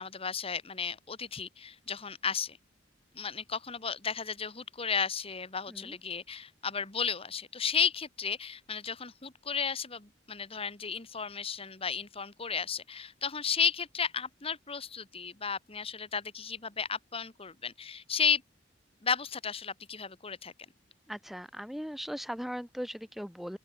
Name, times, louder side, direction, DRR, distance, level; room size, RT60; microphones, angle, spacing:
voice 1, 0.0-2.6 3.2-18.4 19.0-20.5, left 6 dB, 30° left, 1.7 m, -33 dB
voice 2, 21.1-23.6, equal, ahead, 2.4 m, -39 dB
open air
head